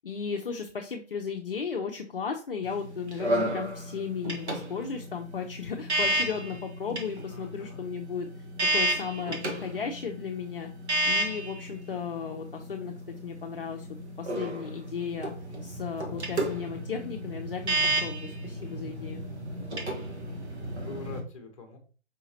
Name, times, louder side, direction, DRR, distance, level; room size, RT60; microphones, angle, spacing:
voice 1, 0.0-8.3 8.7-10.7 11.0-12.9 13.2-13.9 14.2-15.3 15.6-19.2, left 6 dB, 50° left, 2 dB, 0.5 m, -35 dB
sound 1, 2.6-21.2, right 1 dB, 65° right, 1.2 m, -32 dB
voice 2, 6.0-6.6 7.3-7.8 9.2-9.8 20.9-21.8, left 3 dB, 30° left, 4 dB, 0.8 m, -44 dB
5.0 x 2.7 x 2.8 m, 0.37 s
figure-of-eight pair, 145°, 36 cm